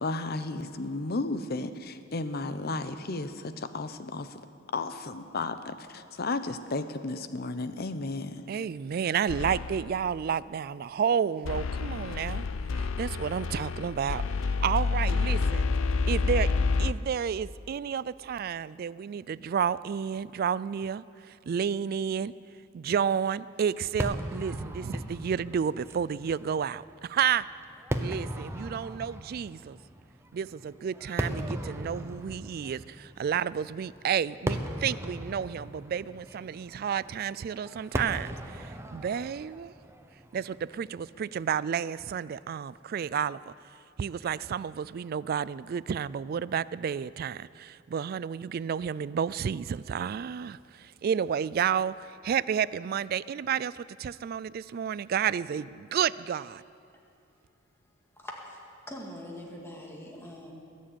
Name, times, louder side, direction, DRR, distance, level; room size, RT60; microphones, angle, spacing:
voice 1, 0.0-4.4 4.7-8.4, left 3 dB, 50° left, 0.8 m, -33 dB
voice 2, 8.5-12.5 12.7-15.7 16.1-16.5 16.8-22.3 22.7-27.5 28.0-29.8 30.3-39.7 40.3-43.5 44.0-56.6, right 7 dB, 50° right, 0.3 m, -31 dB
sound 1, 9.3-10.0 11.4-16.9, left 4 dB, 85° left, 0.6 m, -28 dB
Fireworks, 24.0-41.3, right 1 dB, 15° right, 0.8 m, -38 dB
voice 3, 58.2-58.6 58.9-60.5, left 1 dB, 15° left, 2.1 m, -43 dB
21.0 x 7.4 x 8.7 m
head